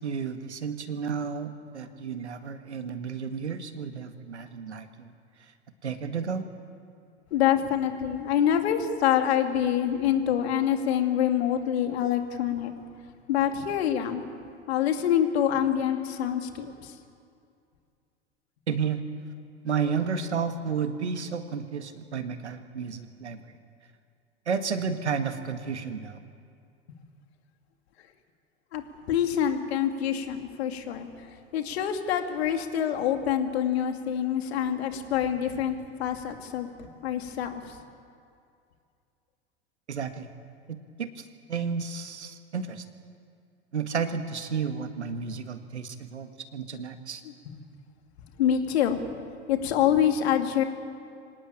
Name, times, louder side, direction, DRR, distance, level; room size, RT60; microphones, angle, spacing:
voice 1, 0.0-5.1 5.8-6.5 18.7-19.0 19.6-23.6 24.5-26.2 39.9-40.3 41.0-42.8 43.7-47.2, right 6 dB, 85° right, 8 dB, 1.8 m, -32 dB
voice 2, 7.3-12.7 13.3-14.2 14.7-16.9 28.7-28.8 29.1-31.1 31.5-37.8 47.5-47.6 48.4-49.0 49.5-50.6, left 9 dB, 65° left, 5 dB, 2.8 m, -26 dB
26.0 x 18.5 x 8.8 m, 2.4 s
figure-of-eight pair, 85°, 33 cm